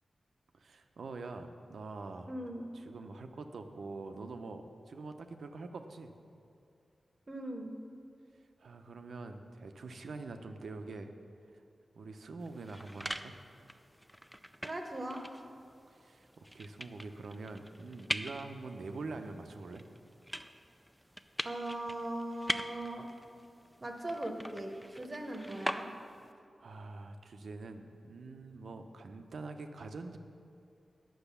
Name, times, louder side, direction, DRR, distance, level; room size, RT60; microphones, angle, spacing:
voice 1, 0.5-2.3 2.7-6.1 8.6-11.1 11.5-11.6 12.0-13.3 15.9-19.8 26.6-30.2, right 3 dB, 80° right, 6 dB, 0.6 m, -45 dB
voice 2, 2.3-2.6 7.3-7.7 14.6-15.2 21.4-23.1 23.8-25.9, right 1 dB, 35° right, 2 dB, 0.9 m, -39 dB
sound 1, 12.4-26.3, equal, 5° right, 0.3 m, -43 dB
10.0 x 6.3 x 7.0 m, 2.5 s
wide cardioid pair, 105°, 0 cm